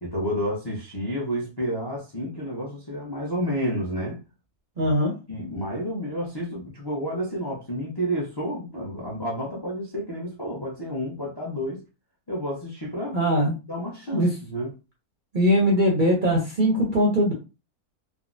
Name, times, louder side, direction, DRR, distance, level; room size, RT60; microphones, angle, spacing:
voice 1, 0.0-4.2 4.8-4.9 5.3-11.8 12.3-13.2 13.7-14.7, equal, 30° left, 0.5 m, -30 dB
voice 2, 4.8-5.1 13.1-13.6 14.1-14.3 15.3-17.3, equal, 50° right, 0.6 m, -21 dB
3.5 x 2.0 x 2.5 m
omnidirectional pair, 1.6 m